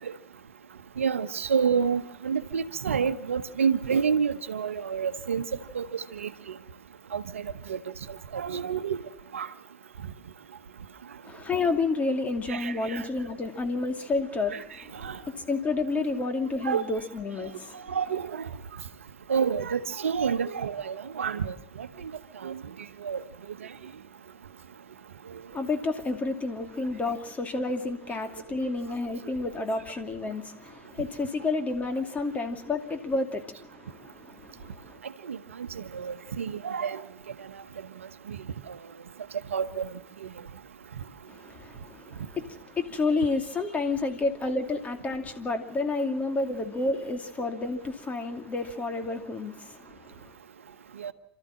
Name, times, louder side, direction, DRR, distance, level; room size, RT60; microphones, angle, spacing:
voice 1, 1.0-5.4 5.7-6.6 7.1-7.8 8.1-9.0 9.3-9.5 12.5-13.1 14.5-14.6 15.0-15.2 16.6-16.8 17.9-18.5 19.3-21.9 22.4-22.6 23.0-23.2 35.2-35.4 35.9-37.0 38.3-38.4 38.7-38.8 39.5-39.9 40.2-40.3 51.0-51.1, right 6 dB, 80° right, 1.0 m, -29 dB
voice 2, 11.2-17.8 25.5-35.0 41.3-50.3, left 3 dB, 20° left, 2.6 m, -30 dB
29.0 x 13.5 x 7.6 m
hypercardioid pair, 90°, 7 cm